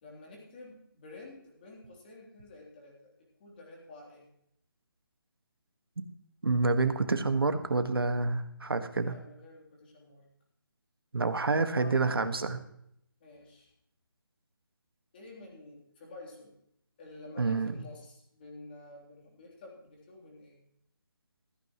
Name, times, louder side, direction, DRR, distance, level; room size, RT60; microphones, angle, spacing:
voice 1, 0.0-3.1 3.4-4.3 9.0-10.3 11.6-12.0 13.2-13.7 15.1-16.6 17.0-20.6, left 2 dB, 25° left, -2 dB, 3.4 m, -50 dB
voice 2, 6.4-9.1 11.1-12.6 17.4-17.7, right 3 dB, 80° right, 8 dB, 1.7 m, -28 dB
15.0 x 14.5 x 3.1 m, 0.74 s
hypercardioid pair, 170°, 12 cm